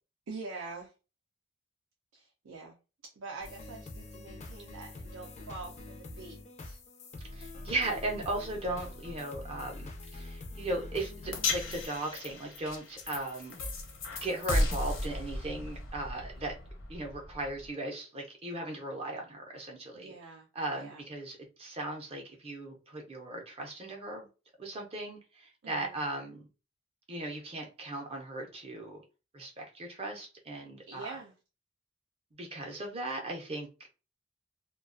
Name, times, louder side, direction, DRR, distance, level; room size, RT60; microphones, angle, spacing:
voice 1, 0.3-0.9 2.1-2.7 3.0-6.8 19.9-21.0 25.6-26.0 30.9-31.3, right 3 dB, 75° right, 0.5 m, -45 dB
sound 1, 3.4-11.9, left 2 dB, 35° left, 0.4 m, -45 dB
voice 2, 7.3-13.6 14.2-16.5 16.9-20.1 20.5-24.3 24.6-26.4 27.1-29.0 29.3-31.1 32.4-33.7, right 2 dB, 30° right, 0.5 m, -37 dB
sound 2, 11.3-17.7, left 2 dB, 70° left, 0.7 m, -35 dB
2.4 x 2.2 x 2.4 m
head